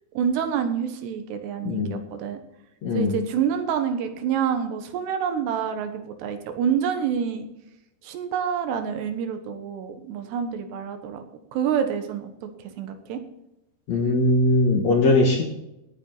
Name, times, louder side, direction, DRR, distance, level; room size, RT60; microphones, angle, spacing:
voice 1, 0.2-2.4 2.9-7.5 8.0-11.2 11.5-13.2, right 8 dB, 85° right, 7 dB, 3.4 m, -27 dB
voice 2, 1.6-2.0 2.8-3.1 13.9-15.4, left 2 dB, 55° left, 2 dB, 2.2 m, -20 dB
17.0 x 8.4 x 4.0 m, 0.89 s
omnidirectional pair, 4.7 m